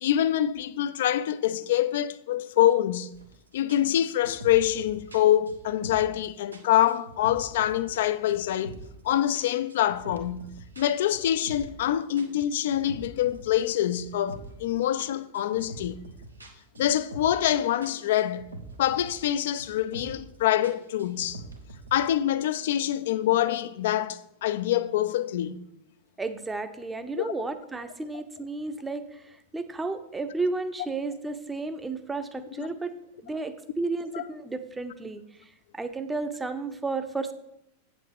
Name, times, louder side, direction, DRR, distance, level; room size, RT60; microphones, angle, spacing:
voice 1, 0.0-3.1 3.5-8.8 9.0-16.0 16.8-18.5 18.8-21.4 21.9-25.6 27.2-27.3 32.6-32.7 34.1-34.2, left 12 dB, 55° left, 0.4 m, -25 dB
sound 1, 3.1-3.4 3.7-6.2 6.5-8.0 8.3-9.0 9.3-11.8 12.2-14.7 15.0-17.5 17.8-19.3 19.6-20.3 20.6-22.1, right 2 dB, 80° right, 1.0 m, -44 dB
voice 2, 26.2-32.9 33.2-35.2 35.7-37.3, right 3 dB, 10° right, 0.7 m, -32 dB
8.4 x 7.7 x 3.6 m
figure-of-eight pair, 90°, 0 cm